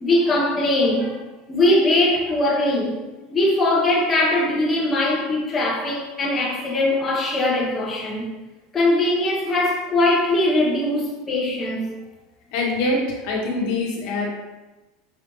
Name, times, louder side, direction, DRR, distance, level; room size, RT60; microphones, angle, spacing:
voice 1, 0.0-1.2 1.5-3.0 3.3-8.3 8.7-11.9, left 1 dB, 20° left, 0.8 m, -21 dB
voice 2, 12.5-14.3, left 2 dB, 70° left, 1.1 m, -24 dB
5.1 x 3.2 x 3.0 m
supercardioid pair, 130°, 0 cm